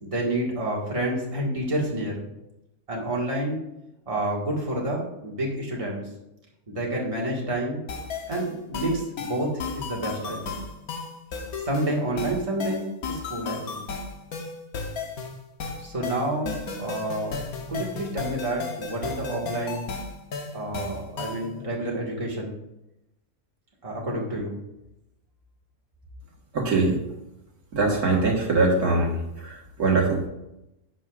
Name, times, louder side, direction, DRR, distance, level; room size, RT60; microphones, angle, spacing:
voice 1, 0.0-2.2 2.9-3.6 4.1-6.1 6.7-7.8 8.3-10.5 11.6-13.8 15.8-17.4 17.7-19.8 20.5-22.6 23.8-24.6, right 1 dB, 25° right, -3 dB, 1.8 m, -29 dB
sound 1, 7.9-21.5, left 4 dB, 80° left, 1.5 m, -34 dB
voice 2, 26.5-27.0 27.7-29.1 29.4-30.3, right 3 dB, 90° right, -1 dB, 2.1 m, -22 dB
10.5 x 7.5 x 2.5 m, 0.88 s
omnidirectional pair, 1.5 m